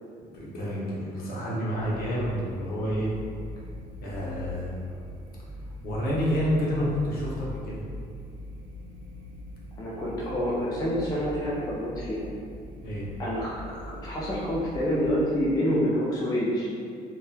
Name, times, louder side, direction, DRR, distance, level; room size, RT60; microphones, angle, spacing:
voice 1, 0.2-3.1 4.0-5.0 5.8-7.8 12.8-13.1, equal, 60° left, -6 dB, 0.8 m, -29 dB
sound 1, 1.7-15.4, equal, 80° right, 0.5 m, -41 dB
voice 2, 9.8-12.3 13.2-16.7, equal, 20° left, -6 dB, 0.4 m, -27 dB
2.9 x 2.2 x 2.2 m, 2.2 s
cardioid pair, 110°, 17 cm